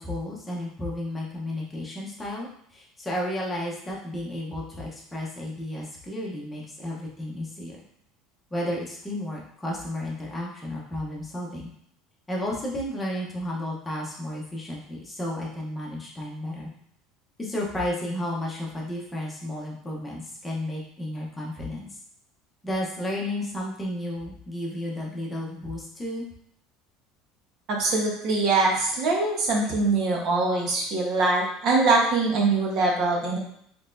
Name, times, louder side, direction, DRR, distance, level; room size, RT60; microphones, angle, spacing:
voice 1, 0.0-7.8 8.5-11.7 12.3-16.7 17.4-21.9 22.6-26.3, left 1 dB, 10° left, -4 dB, 0.9 m, -32 dB
voice 2, 27.7-33.4, right 3 dB, 45° right, -1 dB, 1.1 m, -23 dB
4.1 x 3.2 x 2.6 m, 0.69 s
cardioid pair, 150°, 0 cm